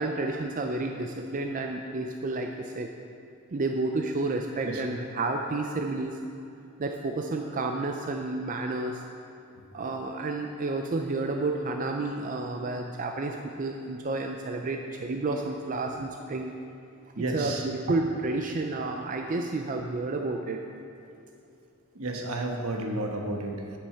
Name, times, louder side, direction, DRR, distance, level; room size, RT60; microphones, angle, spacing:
voice 1, 0.0-2.9 3.5-6.2 6.8-9.0 9.7-16.5 17.2-20.6, right 2 dB, 35° right, 3 dB, 0.5 m, -30 dB
voice 2, 17.1-17.7 21.9-23.8, right 2 dB, 70° right, 2 dB, 1.2 m, -32 dB
9.1 x 7.9 x 5.7 m, 2.6 s
head